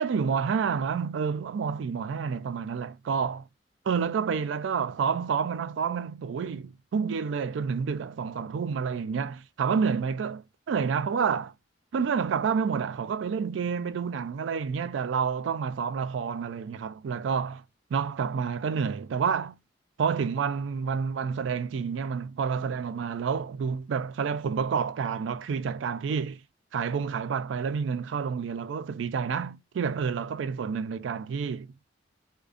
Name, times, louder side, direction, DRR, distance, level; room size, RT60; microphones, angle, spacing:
voice 1, 0.0-3.4 3.9-11.5 11.9-17.6 17.9-19.6 20.0-26.4 26.7-31.7, right 6 dB, 80° right, 0.3 m, -29 dB
2.4 x 2.1 x 2.4 m
head